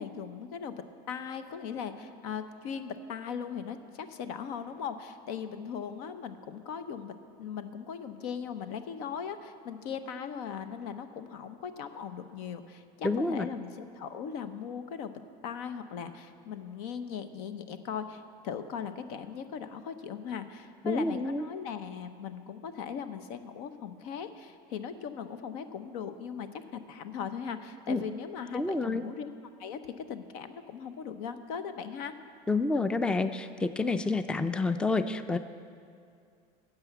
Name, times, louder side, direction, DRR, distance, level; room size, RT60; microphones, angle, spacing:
voice 1, 0.0-15.1 15.4-29.3 29.6-32.1, left 7 dB, 80° left, 10 dB, 0.8 m, -39 dB
voice 2, 13.0-13.5 20.8-21.5 27.9-28.0 28.5-29.0 32.5-35.4, left 3 dB, 5° left, 11 dB, 0.4 m, -28 dB
10.5 x 6.9 x 8.1 m, 2.3 s
supercardioid pair, 100°, 19 cm